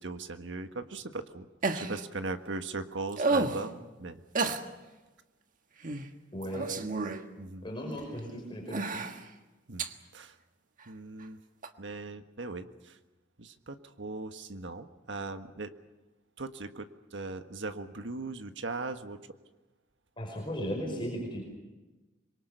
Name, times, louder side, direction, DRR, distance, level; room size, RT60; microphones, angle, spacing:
voice 1, 0.0-1.5 1.7-4.2 7.4-7.7 9.7-9.9 10.1-10.4 10.8-11.4 11.8-13.0 13.4-15.7 16.4-19.2, right 3 dB, 80° right, 8 dB, 1.5 m, -39 dB
sound 1, 1.6-2.0 3.1-3.7 4.4-4.6 5.8-6.1 6.4-7.3 8.0-8.1 8.7-9.2 9.8-9.9 11.6-11.7, right 3 dB, 45° right, 1.5 m, -30 dB
voice 2, 6.3-6.7 7.6-9.0 20.2-21.4, equal, 25° left, 0 dB, 5.3 m, -36 dB
25.5 x 23.0 x 6.8 m, 1.1 s
head